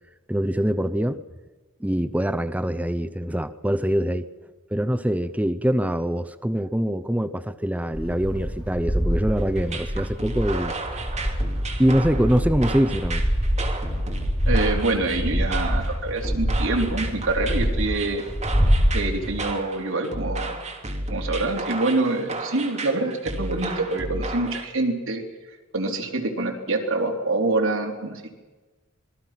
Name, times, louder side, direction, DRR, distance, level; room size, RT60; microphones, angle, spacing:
voice 1, 0.3-1.2 1.8-4.3 4.7-10.7 11.8-13.2, equal, 5° right, 8 dB, 0.7 m, -24 dB
sound 1, 7.9-10.1 10.4-19.4, equal, 20° left, 3.1 m, -25 dB
sound 2, 9.6-24.7, right 2 dB, 35° right, 3.0 m, -33 dB
voice 2, 14.4-18.2 18.9-20.6 21.1-25.2 25.7-28.3, right 2 dB, 65° right, 1 dB, 3.5 m, -26 dB
26.0 x 21.5 x 5.9 m, 1.3 s
head